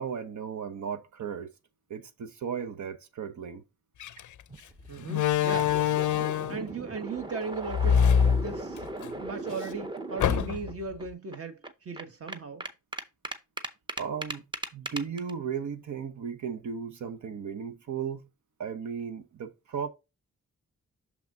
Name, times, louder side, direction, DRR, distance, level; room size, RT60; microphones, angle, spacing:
voice 1, 0.0-1.5 1.9-3.6 14.0-14.4 14.7-18.2 18.6-19.9, right 7 dB, 75° right, 0.9 m, -35 dB
Slam, 4.0-4.2 5.1-6.7 7.7-9.1 9.5-9.6 10.2-10.8, left 8 dB, 80° left, 0.5 m, -24 dB
sound 1, 4.5-10.7 11.0-11.1 11.3-15.3, right 2 dB, 15° right, 0.6 m, -38 dB
voice 2, 4.9-6.0 6.5-8.1 8.4-8.8 9.2-12.7, right 4 dB, 50° right, 1.2 m, -37 dB
6.4 x 5.9 x 2.8 m
wide cardioid pair, 160°, 30 cm